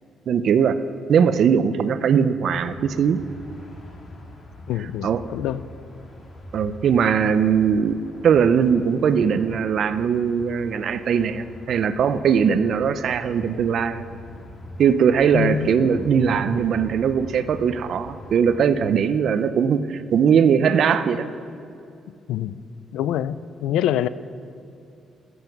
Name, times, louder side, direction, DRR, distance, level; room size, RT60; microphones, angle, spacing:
voice 1, 0.3-0.8 1.1-3.2 5.0-5.2 6.5-8.0 8.2-14.1 14.8-21.3, right 7 dB, 65° right, 0.5 m, -20 dB
sound 1, 2.5-18.6, left 1 dB, 40° left, 2.1 m, -42 dB
voice 2, 4.7-5.6 15.3-16.0 22.3-22.6 22.9-24.1, left 11 dB, 90° left, 0.4 m, -25 dB
14.0 x 7.9 x 5.9 m
cardioid pair, 90°, 0 cm